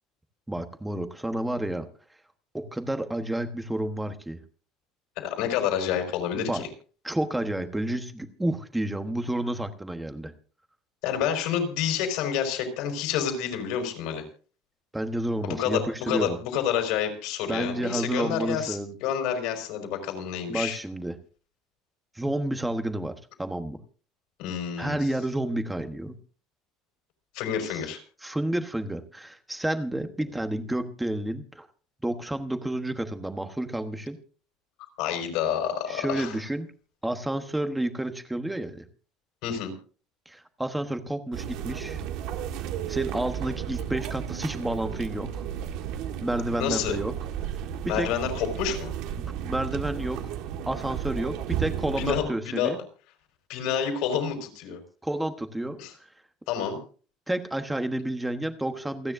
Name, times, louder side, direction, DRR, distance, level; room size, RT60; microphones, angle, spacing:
voice 1, 0.5-1.9 2.5-4.4 6.3-6.6 7.0-10.3 14.9-16.4 17.5-18.9 20.5-21.2 22.1-23.8 24.8-26.1 28.2-31.7 32.0-34.2 35.9-36.7 37.0-38.8 40.3-42.0 42.9-45.4 46.2-47.1 47.8-48.1 49.2-50.3 50.7-52.8 55.0-55.8 57.3-59.1, right 1 dB, 5° right, 7 dB, 1.2 m, -30 dB
voice 2, 5.2-6.7 11.0-14.2 15.4-20.8 24.4-25.0 27.3-28.0 35.0-36.3 39.4-39.7 46.6-47.0 47.9-48.9 52.0-52.7 53.5-54.8 55.8-55.9 56.5-56.8, left 8 dB, 65° left, 4 dB, 5.0 m, -28 dB
sound 1, 41.3-52.2, right 9 dB, 60° right, 1.7 m, -33 dB
28.5 x 9.9 x 2.7 m, 0.40 s
cardioid pair, 175°, 0 cm